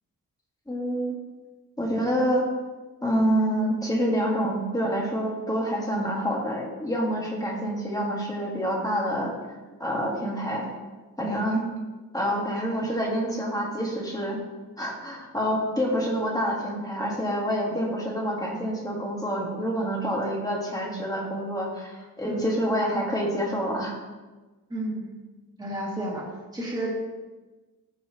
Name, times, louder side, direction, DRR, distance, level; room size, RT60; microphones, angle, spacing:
voice 1, 0.7-1.2 1.8-2.4 3.0-9.3 9.8-10.7 11.2-11.6 12.1-14.4 14.8-23.9, equal, 10° left, -2 dB, 1.6 m, -27 dB
voice 2, 24.7-25.1 25.6-26.9, right 1 dB, 10° right, -6 dB, 2.1 m, -31 dB
14.5 x 5.5 x 2.9 m, 1.2 s
wide cardioid pair, 150°, 38 cm